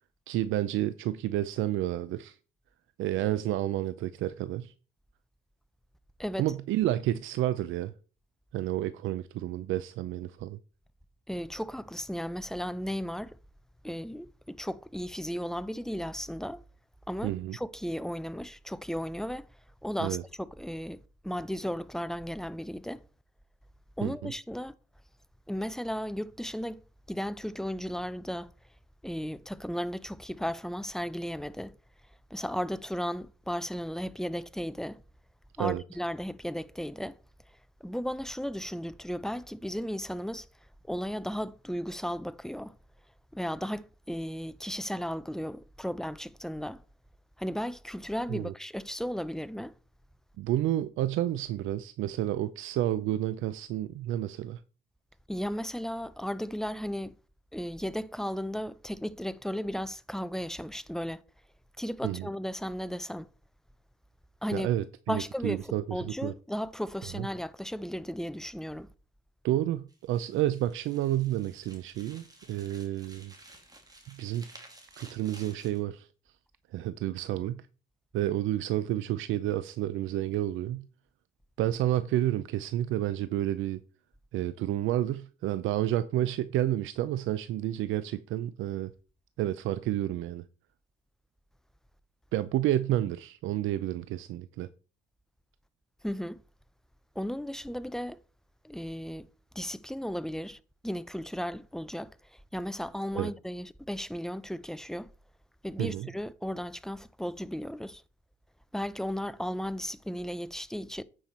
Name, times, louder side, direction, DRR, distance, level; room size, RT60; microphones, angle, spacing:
voice 1, 0.3-2.4 3.0-4.7 6.4-7.9 8.5-10.6 17.2-17.6 20.0-20.2 24.0-24.3 35.6-35.8 48.3-48.5 50.4-54.6 62.0-62.3 64.5-66.3 67.2-67.3 69.4-73.3 74.1-74.5 75.0-76.1 76.7-77.6 78.1-80.9 81.6-83.8 84.3-88.9 89.4-90.4 92.3-94.7 103.1-103.3 105.8-106.1, right 13 dB, 85° right, 0.5 m, -30 dB
voice 2, 11.3-13.4 13.8-16.6 17.1-19.5 19.8-23.0 24.0-24.7 25.5-26.8 27.1-28.5 29.0-31.8 32.3-35.0 35.6-37.2 37.8-40.5 40.9-42.7 43.3-46.8 47.4-49.7 55.3-57.1 57.5-61.2 61.8-63.3 64.4-64.7 65.1-68.9 96.0-96.4 97.2-98.2 98.6-99.3 99.5-105.1 105.6-108.0 108.7-111.0, equal, ahead, 0.5 m, -35 dB
sound 1, 69.9-75.8, right 2 dB, 20° right, 2.4 m, -54 dB
9.0 x 5.6 x 4.3 m
cardioid pair, 90°, 20 cm